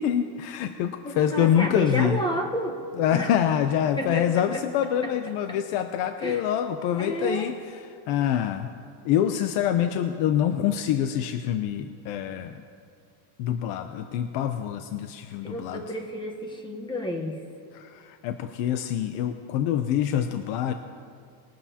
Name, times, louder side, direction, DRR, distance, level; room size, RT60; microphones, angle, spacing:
voice 1, 0.0-2.2 3.0-8.7 9.0-12.6 13.4-15.8 17.7-20.7, left 10 dB, 65° left, 7 dB, 0.7 m, -26 dB
voice 2, 1.0-2.8 3.1-3.3 4.0-4.6 6.2-6.4 7.0-7.5 15.4-17.4, equal, 10° left, 2 dB, 1.0 m, -31 dB
21.0 x 13.0 x 2.8 m, 2.3 s
cardioid pair, 170°, 49 cm